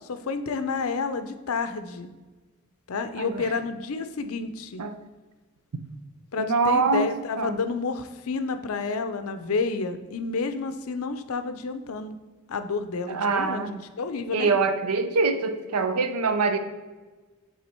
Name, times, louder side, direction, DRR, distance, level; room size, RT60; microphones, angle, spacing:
voice 1, 0.0-2.1 2.9-4.8 6.3-12.2 12.5-14.5, left 4 dB, 70° left, 10 dB, 0.5 m, -30 dB
voice 2, 6.3-7.1 7.4-7.6 13.1-13.7 14.3-16.6, right 4 dB, 85° right, 9 dB, 0.6 m, -24 dB
7.5 x 3.5 x 4.3 m, 1.3 s
head